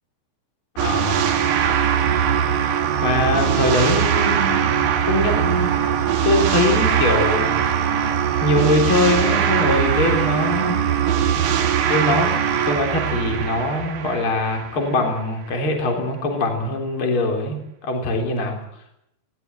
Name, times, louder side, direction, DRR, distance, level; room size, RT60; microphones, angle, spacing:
voice 1, 0.8-1.4 3.0-4.7 5.1-5.7 6.2-7.6 8.4-10.8 11.9-12.3 12.7-18.6, left 2 dB, 30° left, 3 dB, 4.1 m, -22 dB
sound 1, 0.8-15.1, right 8 dB, 60° right, 2.9 m, -21 dB
20.5 x 18.0 x 7.9 m, 0.76 s
omnidirectional pair, 4.8 m